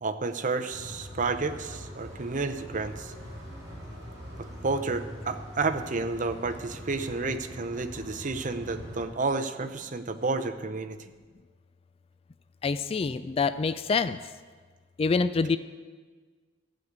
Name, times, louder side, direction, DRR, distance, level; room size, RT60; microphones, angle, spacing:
voice 1, 0.0-3.1 4.6-11.0, right 3 dB, 40° right, 7 dB, 0.7 m, -31 dB
sound 1, 0.7-9.1, equal, 20° right, 4.5 m, -42 dB
voice 2, 12.6-14.2 15.0-15.6, left 4 dB, 30° left, 13 dB, 0.3 m, -26 dB
14.5 x 5.2 x 8.1 m, 1.5 s
head